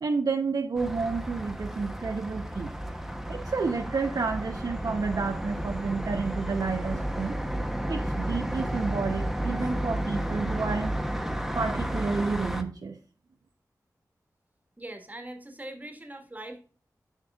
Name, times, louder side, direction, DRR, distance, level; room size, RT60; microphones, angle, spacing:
voice 1, 0.0-2.7 3.3-7.4 7.9-11.0 11.5-13.0, right 4 dB, 70° right, 4 dB, 0.8 m, -30 dB
sound 1, 0.8-12.6, right 1 dB, 5° right, 1.0 m, -32 dB
voice 2, 14.8-16.6, right 1 dB, 25° right, 4 dB, 1.5 m, -41 dB
8.1 x 6.1 x 2.4 m, 0.41 s
cardioid pair, 55°, 7 cm